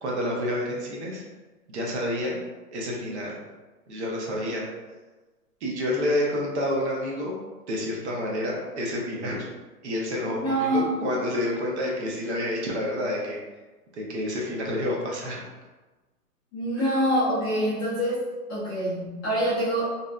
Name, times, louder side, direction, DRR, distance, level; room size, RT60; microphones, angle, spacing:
voice 1, 0.0-1.2 1.7-2.4 2.7-3.4 3.9-4.7 5.6-7.3 7.7-9.5 9.8-13.4 13.9-15.4 16.8-16.9, left 1 dB, 45° right, -2 dB, 0.6 m, -29 dB
voice 2, 10.3-10.9 16.5-19.9, equal, 15° left, -13 dB, 0.5 m, -25 dB
2.6 x 2.1 x 2.3 m, 1.2 s
hypercardioid pair, 140°, 47 cm